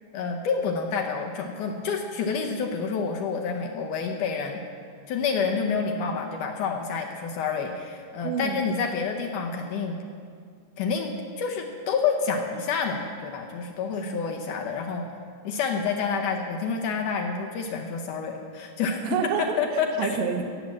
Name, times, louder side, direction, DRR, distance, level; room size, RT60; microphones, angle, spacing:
voice 1, 0.1-4.6 5.1-10.0 10.8-11.1 11.4-15.1 15.4-19.0 19.6-20.1, left 5 dB, 75° left, 2 dB, 2.0 m, -28 dB
voice 2, 8.2-8.6 14.0-14.2 19.0-20.4, right 6 dB, 80° right, 5 dB, 2.7 m, -29 dB
16.5 x 7.6 x 7.4 m, 2.2 s
omnidirectional pair, 4.5 m